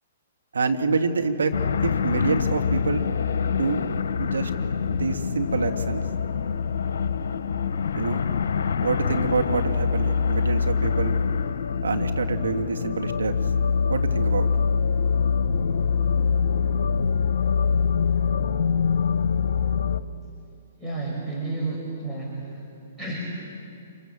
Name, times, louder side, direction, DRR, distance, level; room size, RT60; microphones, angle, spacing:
voice 1, 0.5-1.5 1.8-3.0 3.5-3.8 4.2-4.5 4.9-6.0 7.9-8.3 8.8-11.2 11.8-13.3 13.9-14.5, right 4 dB, 80° right, 5 dB, 2.1 m, -26 dB
sound 1, 1.5-20.0, left 6 dB, 70° left, 1.1 m, -24 dB
voice 2, 20.8-22.7 23.0-23.3, right 2 dB, 5° right, -5 dB, 6.4 m, -31 dB
27.5 x 25.0 x 7.4 m, 2.5 s
hypercardioid pair, 125°, 0 cm